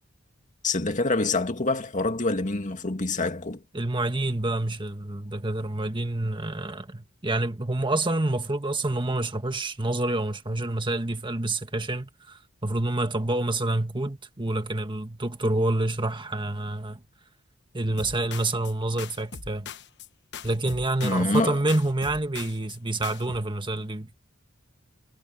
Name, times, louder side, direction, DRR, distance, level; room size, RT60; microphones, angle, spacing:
voice 1, 0.6-3.6 21.0-21.6, left 2 dB, 40° left, 2.0 m, -26 dB
voice 2, 3.7-17.0 17.7-19.7 20.4-24.1, right 2 dB, 25° right, 1.7 m, -28 dB
sound 1, 18.0-18.7 19.0-20.1 20.3-21.4 21.7-22.8 23.0-23.4, left 6 dB, 60° left, 1.1 m, -41 dB
head